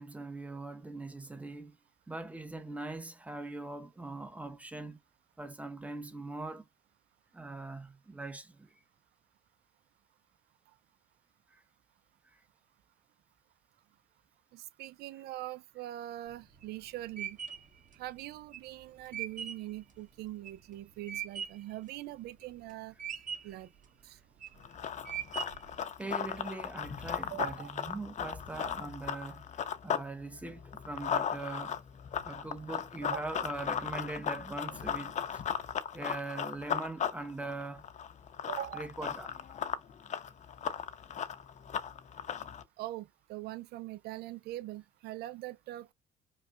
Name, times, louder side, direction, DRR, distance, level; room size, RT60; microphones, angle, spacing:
voice 1, 0.0-1.8 2.1-5.0 5.4-6.7 7.3-8.8 11.5-11.6 12.3-12.4 26.0-31.8 32.2-35.4 35.9-37.8 38.7-39.3, right 2 dB, 10° right, 0.8 m, -41 dB
voice 2, 14.5-17.4 17.9-22.9 23.4-23.7 24.0-24.2 27.3-27.7 33.0-33.2 38.5-38.9 42.8-45.9, right 15 dB, 70° right, 0.5 m, -42 dB
sound 1, 16.3-21.7 22.2-22.7 23.0-23.7 24.2-24.6 25.1-25.8, right 8 dB, 50° right, 1.4 m, -40 dB
Run, 24.6-30.1 30.4-42.6, left 8 dB, 45° left, 0.7 m, -36 dB
5.3 x 2.2 x 2.3 m
cardioid pair, 110°, 17 cm